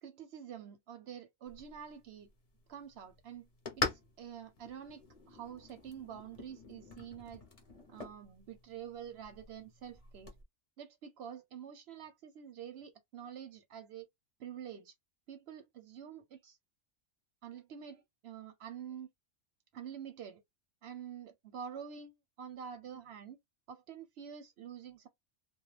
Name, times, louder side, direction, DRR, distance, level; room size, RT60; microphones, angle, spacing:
voice 1, 0.0-2.3 2.7-3.5 3.8-7.4 7.9-10.3 10.8-14.1 14.4-14.9 15.3-16.6 17.4-19.1 19.7-20.4 20.8-23.4 23.7-25.1, right 8 dB, 65° right, 0.7 m, -47 dB
sound 1, 1.5-10.4, left 4 dB, 40° left, 0.5 m, -44 dB
2.3 x 2.1 x 3.1 m
omnidirectional pair, 1.3 m